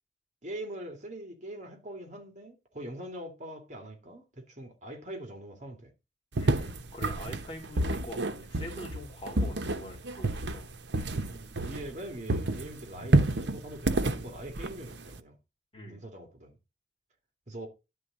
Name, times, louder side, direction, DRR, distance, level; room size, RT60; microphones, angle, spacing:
voice 1, 0.4-5.9 11.3-15.4 15.9-16.5 17.5-17.7, right 1 dB, 45° right, 2.4 m, -43 dB
voice 2, 6.4-10.7 15.7-16.0, equal, 30° left, 2.5 m, -44 dB
sound 1, 6.4-12.0 12.3-15.2, right 2 dB, 80° right, 0.9 m, -29 dB
11.0 x 3.9 x 7.4 m
head